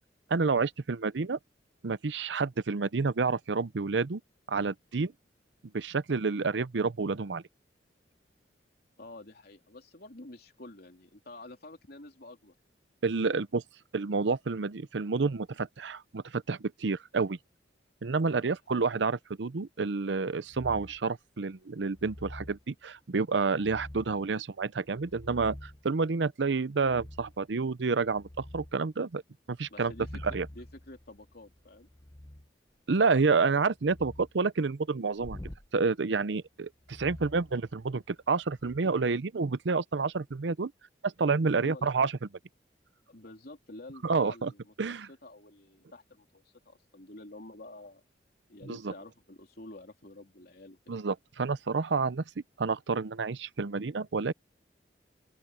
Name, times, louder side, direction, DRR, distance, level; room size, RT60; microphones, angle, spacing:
voice 1, 0.3-1.4 1.8-4.2 4.5-5.1 5.7-7.4 13.0-13.6 13.9-17.4 18.0-29.2 29.5-29.9 30.3-30.5 32.9-35.4 35.7-40.7 41.0-42.1 44.0-44.5 44.8-45.1 48.7-48.9 50.9-52.2 52.6-54.3, right 4 dB, 80° right, 0.6 m, -29 dB
voice 2, 9.0-12.5 18.2-18.6 29.7-31.9 41.4-41.9 43.1-48.0 48.5-50.9, left 2 dB, 60° left, 3.3 m, -49 dB
sound 1, 20.5-21.1 21.9-22.6 23.6-24.3 24.9-25.9 26.8-27.4 27.9-28.8 29.8-32.5 33.8-34.3 35.2-35.7 36.8-38.1 38.5-38.8, left 1 dB, 20° left, 0.9 m, -46 dB
open air
head